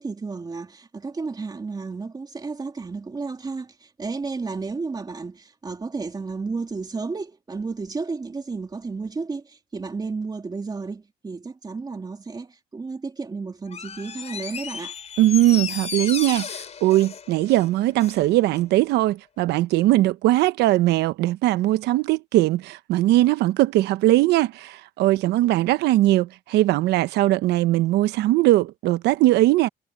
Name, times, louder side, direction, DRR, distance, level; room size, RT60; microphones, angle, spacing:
voice 1, 0.0-15.0, right 4 dB, 25° right, 2.9 m, -32 dB
Door, 13.7-18.2 18.6-18.7, left 7 dB, 40° left, 4.8 m, -34 dB
voice 2, 15.2-29.7, right 16 dB, 80° right, 0.9 m, -20 dB
cardioid pair, 110°, 17 cm